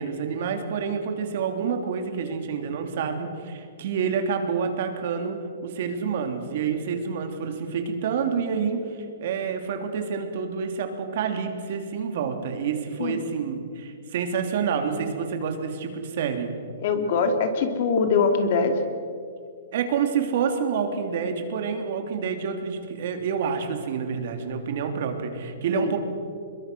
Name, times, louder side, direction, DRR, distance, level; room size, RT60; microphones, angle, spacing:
voice 1, 0.0-16.5 19.7-26.0, right 6 dB, 55° right, 5 dB, 3.0 m, -28 dB
voice 2, 16.8-18.7 25.7-25.9, left 5 dB, 50° left, 6 dB, 2.6 m, -23 dB
24.5 x 22.0 x 6.2 m, 2.4 s
hypercardioid pair, 160°, 0 cm